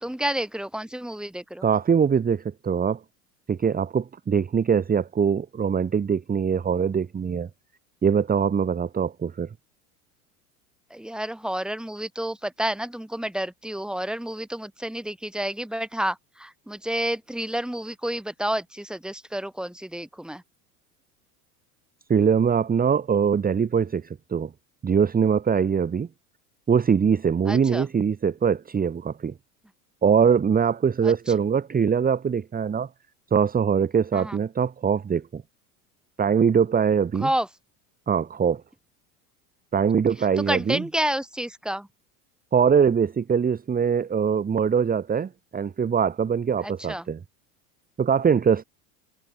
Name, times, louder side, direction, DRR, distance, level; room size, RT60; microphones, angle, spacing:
voice 1, 0.0-1.6 10.9-20.4 27.5-27.8 31.0-31.1 34.1-34.4 37.2-37.5 40.5-41.9 46.6-47.0, right 1 dB, ahead, 2.5 m, -30 dB
voice 2, 1.6-3.0 3.5-7.5 8.0-9.5 22.1-24.5 24.8-26.1 26.7-29.3 30.0-32.9 33.3-35.4 36.2-37.3 38.1-38.6 39.7-40.9 42.5-47.2 48.0-48.6, right 7 dB, 20° right, 1.5 m, -22 dB
hypercardioid pair, 90°, 45 cm